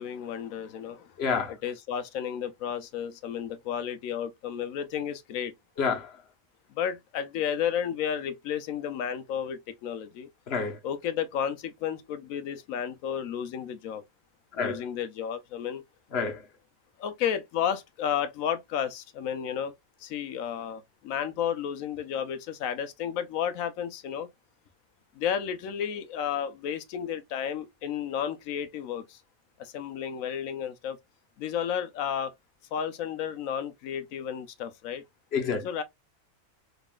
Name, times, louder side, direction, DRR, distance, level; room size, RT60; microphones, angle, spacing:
voice 1, 0.0-1.1 1.5-5.5 6.7-10.3 10.8-14.0 14.5-15.8 17.0-19.7 20.0-24.3 25.1-29.2 29.6-31.0 31.4-32.3 32.7-35.0 35.6-35.8, left 8 dB, 85° left, 1.1 m, -32 dB
voice 2, 1.2-1.5 5.8-6.2 10.5-10.8 14.6-14.8 16.1-16.4 35.3-35.7, left 5 dB, 55° left, 1.3 m, -28 dB
4.0 x 3.6 x 2.3 m
omnidirectional pair, 1.4 m